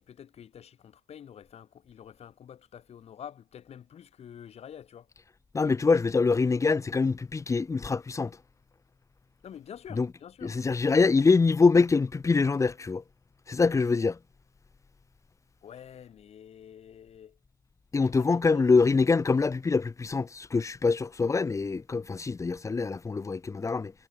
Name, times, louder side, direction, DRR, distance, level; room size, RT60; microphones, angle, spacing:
voice 1, 0.0-5.1 9.4-10.6 15.6-17.4 18.0-18.7, left 9 dB, 70° left, 4.1 m, -47 dB
voice 2, 5.5-8.4 10.0-10.1 10.4-13.0 13.5-14.2 17.9-23.9, left 4 dB, 30° left, 0.6 m, -24 dB
cardioid pair, 90°, 11 cm